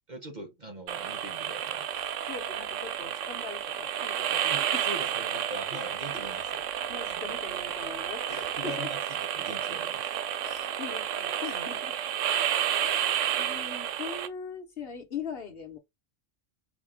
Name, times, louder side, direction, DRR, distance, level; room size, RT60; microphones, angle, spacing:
voice 1, 0.1-1.9 4.5-6.7 7.1-7.5 8.3-9.0 9.3-10.1, right 1 dB, 40° right, 1.2 m, -42 dB
sound 1, 0.9-14.3, right 10 dB, 80° right, 1.0 m, -31 dB
voice 2, 1.9-4.9 6.1-6.3 6.9-8.9 10.4-12.0 12.8-15.8, left 5 dB, 55° left, 1.3 m, -41 dB
5.0 x 2.5 x 3.5 m
omnidirectional pair, 1.3 m